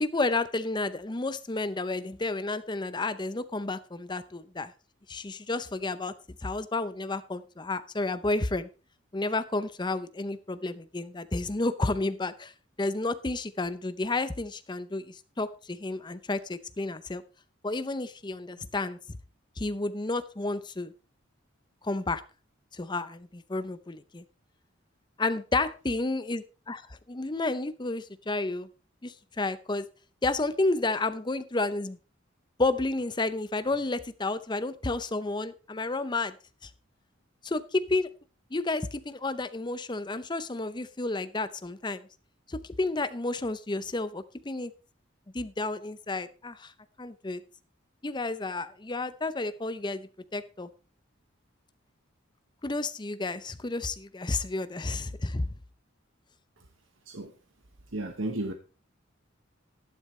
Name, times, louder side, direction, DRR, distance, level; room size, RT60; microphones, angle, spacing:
voice 1, 0.0-4.7 5.1-6.1 6.4-8.7 9.1-12.5 12.8-17.2 17.6-19.2 19.6-20.9 21.8-22.2 22.7-24.2 25.2-28.7 29.0-29.9 30.2-32.0 32.6-36.3 36.6-36.7 37.4-38.1 38.5-42.1 42.5-44.7 45.3-46.7 47.0-47.4 48.0-50.7 52.6-55.5, left 2 dB, 20° left, 13 dB, 0.6 m, -31 dB
voice 2, 57.9-58.5, right 2 dB, 75° right, 5 dB, 1.2 m, -33 dB
12.5 x 11.0 x 3.2 m, 0.33 s
head